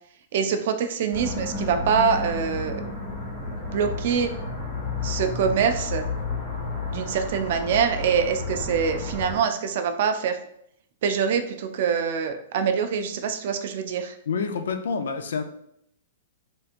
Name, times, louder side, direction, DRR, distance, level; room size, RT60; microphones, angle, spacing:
voice 1, 0.3-2.8 3.5-4.3 5.0-6.1 6.9-10.4 11.0-14.2, right 6 dB, 45° right, 7 dB, 0.3 m, -24 dB
sound 1, 1.1-9.4, left 3 dB, 15° left, 1.2 m, -31 dB
voice 2, 14.3-15.4, left 5 dB, 80° left, 7 dB, 0.4 m, -27 dB
3.4 x 2.9 x 2.4 m, 0.72 s
hypercardioid pair, 170°, 0 cm